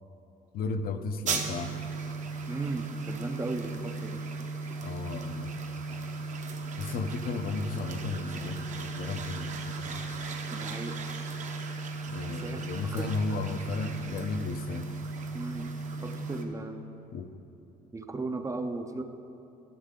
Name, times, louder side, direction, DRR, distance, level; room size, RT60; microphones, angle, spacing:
voice 1, 0.5-1.7 4.8-5.5 6.8-10.0 12.1-14.9 17.1-17.3, left 4 dB, 60° left, 8 dB, 0.6 m, -34 dB
sound 1, 1.3-16.4, right 3 dB, 45° right, 0.8 m, -36 dB
voice 2, 2.5-4.2 10.5-11.0 12.3-12.6 12.9-13.1 15.3-15.7 16.0-16.8 17.9-19.0, right 3 dB, 20° right, 7 dB, 0.5 m, -36 dB
12.0 x 6.5 x 3.7 m, 2.9 s
cardioid pair, 110°, 17 cm